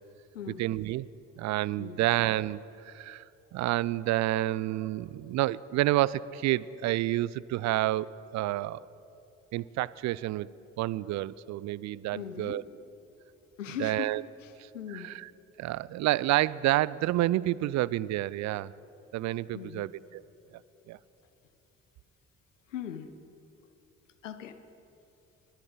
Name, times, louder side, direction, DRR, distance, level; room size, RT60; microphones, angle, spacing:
voice 1, 0.6-1.1 1.4-3.2 3.5-8.8 9.5-10.5 10.8-12.6 13.8-14.2 14.9-15.3 15.6-18.7 19.1-20.2 20.9-21.0, right 15 dB, 50° right, 21 dB, 0.4 m, -29 dB
voice 2, 12.1-12.6 13.6-14.1 14.4-15.1 19.5-19.9 22.7-23.1 24.2-24.5, left 9 dB, 90° left, 11 dB, 0.6 m, -39 dB
21.5 x 11.5 x 4.0 m, 2.9 s
figure-of-eight pair, 40°, 37 cm